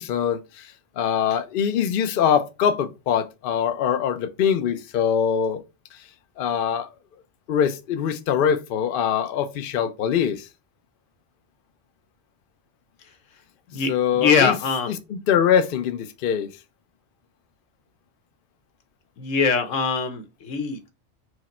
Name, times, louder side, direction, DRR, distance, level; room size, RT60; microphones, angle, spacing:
voice 1, 0.0-5.6 6.4-6.9 7.5-10.5 13.9-14.5 15.3-16.5, left 8 dB, 60° left, 0.6 m, -23 dB
voice 2, 13.7-14.9 19.2-20.9, left 5 dB, 85° left, 1.2 m, -23 dB
4.8 x 2.1 x 4.1 m
omnidirectional pair, 1.3 m